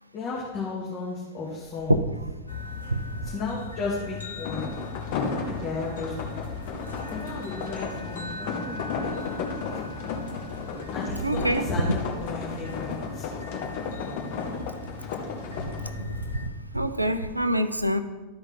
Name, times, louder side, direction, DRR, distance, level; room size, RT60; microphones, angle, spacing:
voice 1, 0.1-2.0 3.2-4.7 5.1-6.2 7.1-9.7 10.9-13.3 13.5-13.7, left 3 dB, 35° left, -6 dB, 2.2 m, -35 dB
sound 1, 2.5-16.5, left 4 dB, 75° left, 1.3 m, -39 dB
sound 2, 4.4-15.9, left 4 dB, 50° left, 1.6 m, -34 dB
voice 2, 11.2-11.6 15.8-18.0, right 1 dB, 85° right, 11 dB, 0.5 m, -26 dB
13.0 x 5.2 x 4.2 m, 1.2 s
figure-of-eight pair, 90°, 0 cm